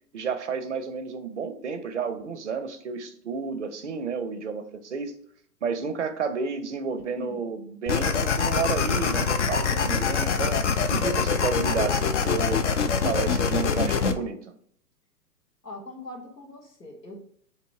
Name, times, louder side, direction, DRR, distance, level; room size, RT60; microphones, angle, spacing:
voice 1, 0.1-5.1 5.6-12.7 13.0-14.5, right 5 dB, 50° right, 9 dB, 0.5 m, -31 dB
sound 1, 7.9-14.1, left 6 dB, 50° left, 0.5 m, -24 dB
voice 2, 15.6-17.2, left 2 dB, 80° left, 0 dB, 1.4 m, -41 dB
3.9 x 2.9 x 3.4 m, 0.63 s
figure-of-eight pair, 125°, 49 cm